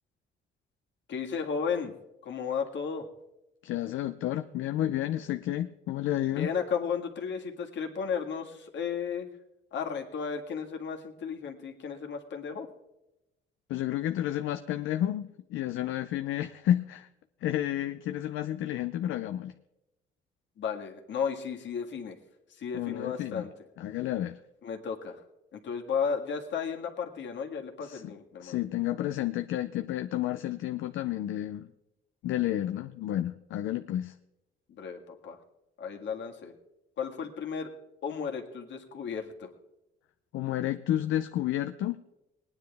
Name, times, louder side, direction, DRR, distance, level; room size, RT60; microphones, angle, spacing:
voice 1, 1.1-1.9 2.2-3.1 6.3-9.3 9.7-12.7 20.6-22.2 22.5-23.5 24.6-25.2 25.5-28.6 34.7-35.4 35.8-36.5 37.0-37.7 38.0-39.5, left 6 dB, 65° left, 2 dB, 1.8 m, -34 dB
voice 2, 3.6-6.5 13.7-17.1 17.4-19.5 22.7-23.5 23.8-24.4 27.8-28.1 28.4-31.7 32.2-34.1 40.3-42.0, left 12 dB, 80° left, 9 dB, 0.6 m, -31 dB
19.5 x 9.9 x 3.5 m, 0.91 s
cardioid pair, 90°, 20 cm